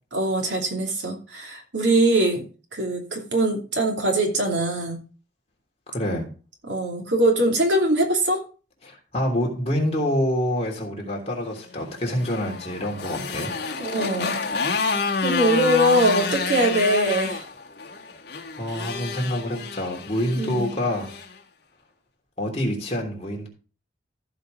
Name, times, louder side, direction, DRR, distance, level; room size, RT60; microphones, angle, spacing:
voice 1, 0.1-2.4 2.7-5.0 6.6-8.4 13.8-14.4 15.2-17.4 20.4-20.7, right 1 dB, 85° right, 1 dB, 2.8 m, -22 dB
voice 2, 5.9-6.3 8.8-13.5 18.6-21.1 22.4-23.5, left 1 dB, 35° left, -1 dB, 3.1 m, -26 dB
Motorcycle, 11.9-21.3, left 4 dB, 60° left, 1.6 m, -29 dB
15.0 x 5.2 x 3.9 m, 0.35 s
head